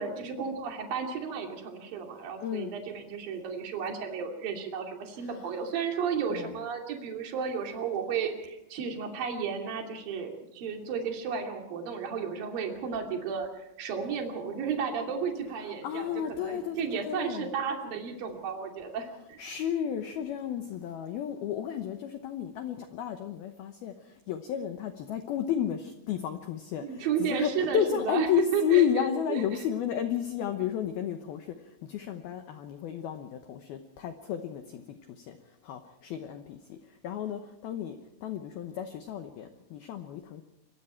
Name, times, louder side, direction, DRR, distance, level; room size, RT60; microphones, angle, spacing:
voice 1, 0.0-13.5 13.8-19.4 26.8-28.3 28.5-29.7, right 6 dB, 50° right, 2 dB, 3.9 m, -33 dB
voice 2, 2.4-2.7 5.2-5.5 6.3-6.6 15.8-17.5 19.4-23.9 24.3-31.5 31.9-35.4 35.6-36.8 37.0-40.4, left 9 dB, 90° left, 7 dB, 2.1 m, -32 dB
26.0 x 22.5 x 4.5 m, 0.87 s
omnidirectional pair, 6.0 m